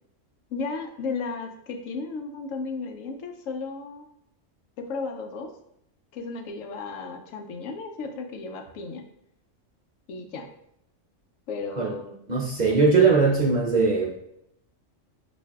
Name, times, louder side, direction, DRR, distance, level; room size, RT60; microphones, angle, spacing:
voice 1, 0.5-4.1 4.8-5.5 6.1-9.1 10.1-10.5 11.5-12.2 12.7-13.0, left 4 dB, 85° left, 5 dB, 1.0 m, -34 dB
voice 2, 12.3-14.1, right 4 dB, 50° right, -2 dB, 0.5 m, -20 dB
6.8 x 2.6 x 2.3 m, 0.77 s
omnidirectional pair, 1.3 m